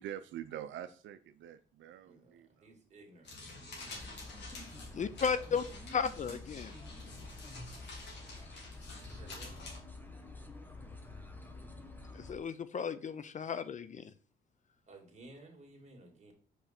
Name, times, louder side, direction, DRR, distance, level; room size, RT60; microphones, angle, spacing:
voice 1, 0.0-2.7, right 11 dB, 75° right, 0.5 m, -45 dB
voice 2, 2.0-4.1 8.9-9.6 14.9-16.3, right 2 dB, 35° right, 2.2 m, -56 dB
sound 1, 3.2-9.8, left 2 dB, 60° left, 2.7 m, -49 dB
sound 2, 3.8-12.4, left 2 dB, 10° left, 1.0 m, -49 dB
voice 3, 4.9-5.7 5.9-6.7 12.1-14.1, left 6 dB, 40° left, 0.5 m, -34 dB
5.5 x 5.0 x 4.3 m
cardioid pair, 90°, 20 cm